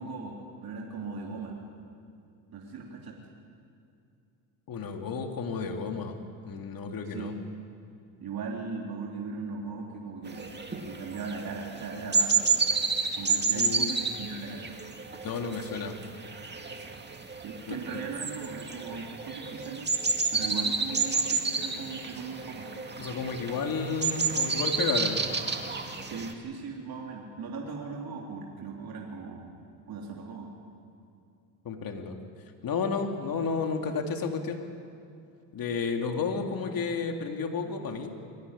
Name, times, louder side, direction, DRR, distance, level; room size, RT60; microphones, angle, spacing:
voice 1, 0.0-1.6 2.5-3.2 7.1-7.3 8.2-10.6 10.8-12.7 13.1-14.7 17.4-19.9 20.3-22.7 26.0-29.5 29.9-30.5, right 4 dB, 50° right, -1 dB, 3.6 m, -38 dB
voice 2, 4.7-6.2 6.4-7.3 13.5-14.0 15.2-16.0 17.7-18.0 23.0-25.2 31.6-32.2 32.6-34.6 35.5-38.2, left 5 dB, 50° left, 4 dB, 2.5 m, -32 dB
sound 1, 10.2-26.3, right 4 dB, 20° right, 2.1 m, -30 dB
23.5 x 16.5 x 9.9 m, 2.5 s
cardioid pair, 105°, 46 cm